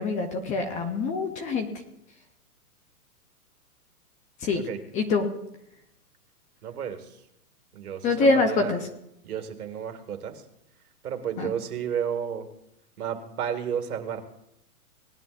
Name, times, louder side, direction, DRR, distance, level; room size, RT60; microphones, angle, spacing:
voice 1, 0.0-1.7 4.4-4.6 4.9-5.3 8.0-8.9 11.4-11.5, left 3 dB, 15° left, 6 dB, 0.7 m, -25 dB
voice 2, 6.6-7.2 7.7-8.7 9.2-10.4 11.0-12.5 13.0-14.2, right 8 dB, 70° right, 7 dB, 2.2 m, -32 dB
19.0 x 11.0 x 2.6 m, 0.81 s
hypercardioid pair, 140°, 46 cm